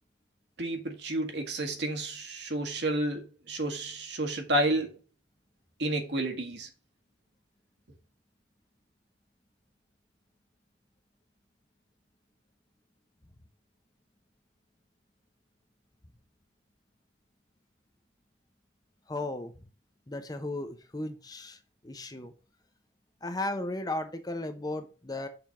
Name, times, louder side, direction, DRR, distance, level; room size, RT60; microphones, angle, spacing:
voice 1, 0.6-4.9 5.8-6.7, right 1 dB, 60° right, 1.7 m, -31 dB
voice 2, 19.1-19.6 20.1-22.3 23.2-25.3, left 2 dB, 20° left, 0.9 m, -35 dB
6.9 x 4.0 x 5.6 m
head